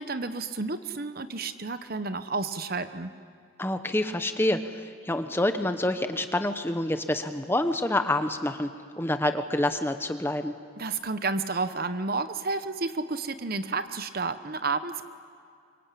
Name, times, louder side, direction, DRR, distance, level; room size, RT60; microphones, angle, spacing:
voice 1, 0.0-3.1 10.8-15.0, right 3 dB, 45° right, 10 dB, 1.0 m, -31 dB
voice 2, 3.6-8.7 9.0-10.5, left 1 dB, 10° left, 8 dB, 0.9 m, -27 dB
25.0 x 23.0 x 8.6 m, 2.3 s
head